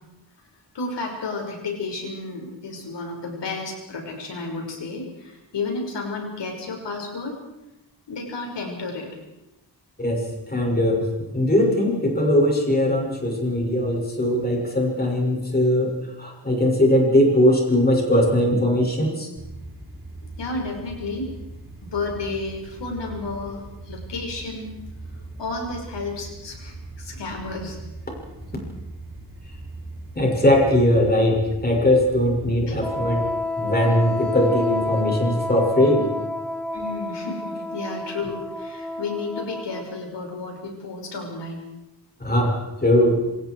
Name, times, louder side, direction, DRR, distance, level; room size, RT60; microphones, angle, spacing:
voice 1, 0.7-7.4 8.1-9.1 20.4-21.3 21.8-24.8 25.4-27.8 32.7-32.8 36.7-41.7, left 3 dB, 85° left, 1 dB, 5.8 m, -32 dB
voice 2, 10.0-11.0 11.3-15.9 16.2-19.3 30.1-33.2 33.6-36.1 42.2-42.5 42.8-43.2, left 1 dB, 20° left, -1 dB, 6.6 m, -20 dB
sound 1, 19.4-33.3, right 2 dB, 30° right, 6.6 m, -40 dB
Wind instrument woodwind instrument, 32.8-40.1, left 2 dB, 5° left, 1.7 m, -29 dB
27.0 x 26.0 x 4.8 m, 0.95 s
wide cardioid pair, 140°, 41 cm